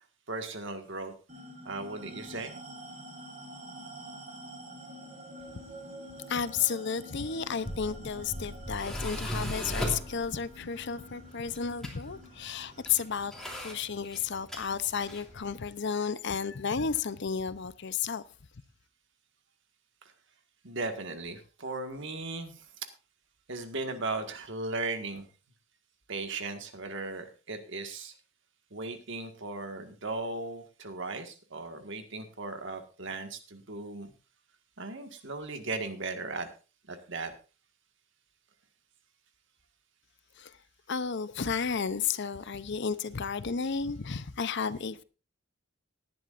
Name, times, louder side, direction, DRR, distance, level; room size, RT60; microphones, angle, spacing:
voice 1, 0.3-1.1 1.7-2.5 20.6-22.6 23.5-25.2 26.1-28.1 28.7-34.1 34.8-36.5 36.9-37.3, right 3 dB, 60° right, 1.8 m, -37 dB
sound 1, 1.3-16.1, right 1 dB, 35° right, 4.4 m, -48 dB
voice 2, 6.3-13.3 13.6-18.2 40.4-40.5 40.9-45.0, left 6 dB, 55° left, 0.7 m, -32 dB
Tools, 7.4-15.4, equal, ahead, 3.1 m, -39 dB
18.5 x 11.0 x 2.6 m
head